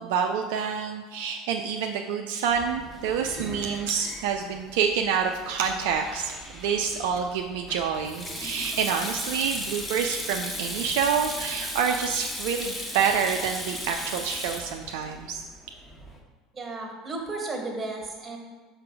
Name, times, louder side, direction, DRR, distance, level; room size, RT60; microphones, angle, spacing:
voice 1, 0.0-15.4, right 6 dB, 60° right, 4 dB, 0.4 m, -27 dB
Sink (filling or washing), 2.5-16.2, equal, 10° left, 1.3 m, -37 dB
voice 2, 16.5-18.4, right 2 dB, 25° right, 2 dB, 1.6 m, -34 dB
5.9 x 4.8 x 4.7 m, 1.4 s
figure-of-eight pair, 70°, 0 cm